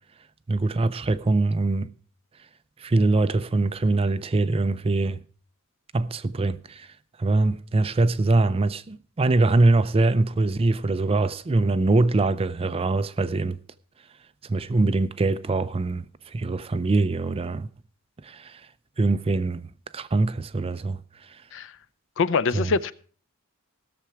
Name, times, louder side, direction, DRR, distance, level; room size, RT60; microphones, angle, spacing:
voice 1, 0.5-1.9 2.8-5.2 5.9-6.9 7.2-13.6 14.5-16.1 16.3-17.7 18.2-18.6 19.0-19.7 19.9-21.0 22.5-22.7, right 2 dB, 25° right, 0.4 m, -23 dB
voice 2, 22.2-22.9, left 4 dB, 60° left, 0.5 m, -24 dB
16.5 x 6.9 x 4.7 m
head